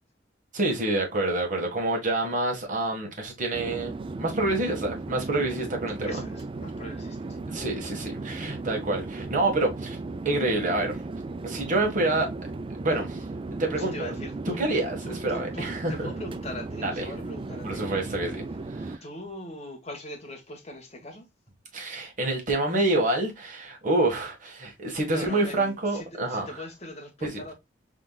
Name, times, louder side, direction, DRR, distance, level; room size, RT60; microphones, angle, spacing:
voice 1, 0.5-6.1 7.5-10.0 10.2-11.0 11.4-12.3 12.8-13.2 13.6-14.1 14.6-16.1 16.8-17.0 17.6-18.4 18.7-19.0 21.7-26.5 27.2-27.4, right 2 dB, 45° right, 1.6 m, -27 dB
Chatter / Fixed-wing aircraft airplane, 3.5-19.0, right 3 dB, 30° right, 0.4 m, -36 dB
voice 2, 6.0-7.4 13.7-14.7 15.0-18.1 19.0-21.3 25.1-27.5, left 1 dB, 35° left, 1.5 m, -41 dB
5.0 x 3.8 x 2.3 m
head